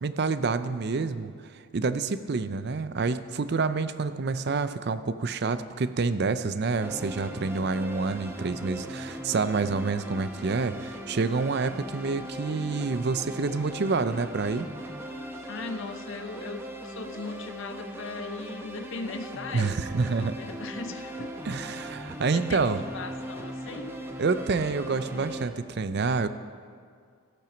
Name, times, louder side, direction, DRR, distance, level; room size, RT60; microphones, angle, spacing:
voice 1, 0.0-1.3 1.7-14.7 19.5-20.4 21.5-22.8 24.2-26.3, right 4 dB, 50° right, 12 dB, 0.4 m, -28 dB
sound 1, 6.8-25.5, right 1 dB, 10° right, 0.8 m, -39 dB
voice 2, 15.5-21.4 22.3-24.0, left 3 dB, 55° left, 9 dB, 0.7 m, -39 dB
15.0 x 8.9 x 5.1 m, 2.1 s
head